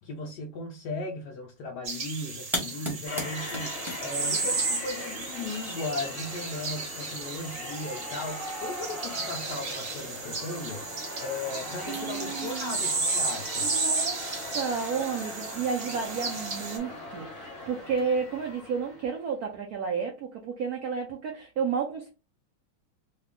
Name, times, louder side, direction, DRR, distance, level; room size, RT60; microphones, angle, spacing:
voice 1, 0.0-10.9 11.2-13.7, left 2 dB, 75° left, 1.0 m, -37 dB
sound 1, 1.8-16.8, right 4 dB, 50° right, 1.0 m, -34 dB
sound 2, 2.5-18.5, equal, ahead, 0.8 m, -44 dB
sound 3, 3.0-19.3, left 2 dB, 30° left, 1.4 m, -40 dB
voice 2, 11.9-12.8 13.6-14.2 14.5-22.1, right 6 dB, 80° right, 0.8 m, -31 dB
3.3 x 2.2 x 3.5 m
omnidirectional pair, 2.3 m